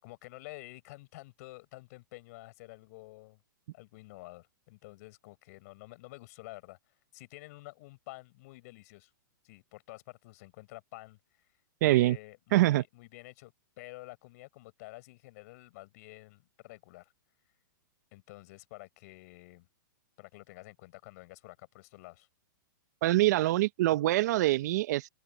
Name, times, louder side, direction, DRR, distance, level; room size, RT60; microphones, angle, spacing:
voice 1, 0.0-3.4 3.7-6.8 7.1-9.1 9.4-11.2 11.8-17.1 18.1-19.7 20.2-22.3, left 21 dB, 50° left, 6.5 m, -50 dB
voice 2, 11.8-12.2 12.5-12.8 23.0-25.1, right 16 dB, 55° right, 0.7 m, -24 dB
open air
hypercardioid pair, 140°, 11 cm